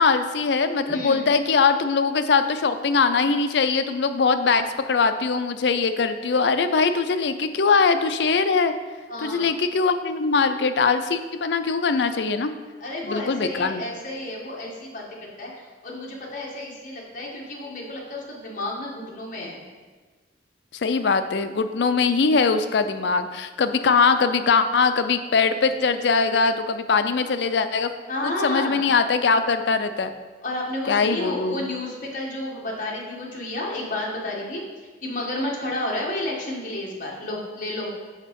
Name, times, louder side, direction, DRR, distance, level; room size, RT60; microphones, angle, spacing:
voice 1, 0.0-8.7 9.2-12.5 13.1-13.8 20.7-27.9 28.2-30.1 30.9-31.7, left 4 dB, 70° left, 10 dB, 0.5 m, -21 dB
voice 2, 0.9-1.2 9.1-9.5 12.8-19.6 28.1-28.9 30.4-34.6 35.0-37.9, left 1 dB, 50° left, -3 dB, 1.5 m, -31 dB
6.4 x 5.2 x 5.3 m, 1.4 s
head